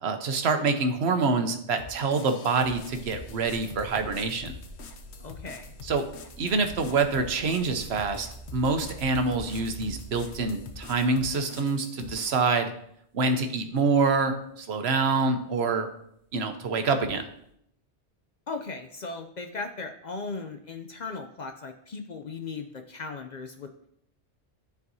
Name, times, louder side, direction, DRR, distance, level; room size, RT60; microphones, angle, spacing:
voice 1, 0.0-4.5 5.8-6.0 6.4-12.7 13.1-15.9 16.3-17.2, right 4 dB, 70° right, 7 dB, 1.0 m, -26 dB
sound 1, 1.8-12.5, left 5 dB, 75° left, 1.0 m, -45 dB
sound 2, 2.7-11.5 12.2-12.6 13.2-13.3 16.8-17.5, right 2 dB, 25° right, 1.8 m, -46 dB
voice 2, 5.2-5.7 18.5-23.7, left 4 dB, 50° left, 6 dB, 0.6 m, -37 dB
12.0 x 4.7 x 2.7 m, 0.71 s
omnidirectional pair, 1.1 m